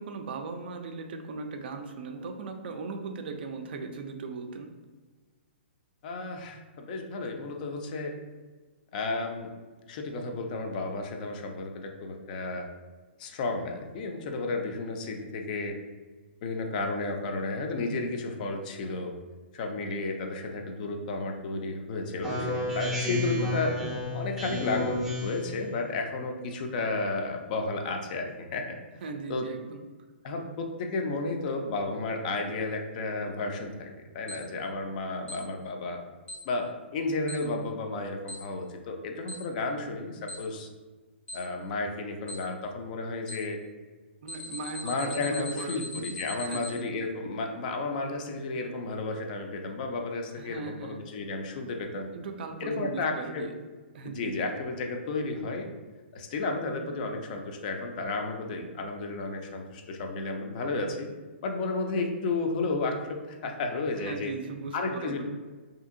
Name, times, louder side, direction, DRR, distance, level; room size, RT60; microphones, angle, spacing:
voice 1, 0.0-4.7 29.0-29.8 44.2-45.8 46.4-46.9 50.4-51.0 52.1-53.5 53.9-54.5 64.0-65.2, right 4 dB, 55° right, 5 dB, 0.4 m, -38 dB
voice 2, 6.0-8.1 8.9-9.5 9.9-12.7 13.2-15.8 16.4-19.1 19.5-23.8 24.1-28.8 29.3-29.5 30.2-33.9 34.1-36.0 36.4-40.7 41.3-43.6 44.8-52.1 52.6-53.4 54.0-55.7 56.1-61.1 61.4-64.3 64.7-65.2, left 3 dB, 40° left, 3 dB, 0.4 m, -32 dB
Speech synthesizer, 22.2-25.6, left 2 dB, 5° right, 0.5 m, -31 dB
Alarm, 34.3-34.4 35.3-35.4 36.3-36.4 37.3-37.4 38.3-38.4 39.3-39.4 40.3-40.4 41.3-41.4 42.3-42.4 43.3-43.4 44.3-46.7, left 1 dB, 85° left, 0.9 m, -39 dB
2.7 x 2.7 x 2.5 m, 1.3 s
hypercardioid pair, 145°, 6 cm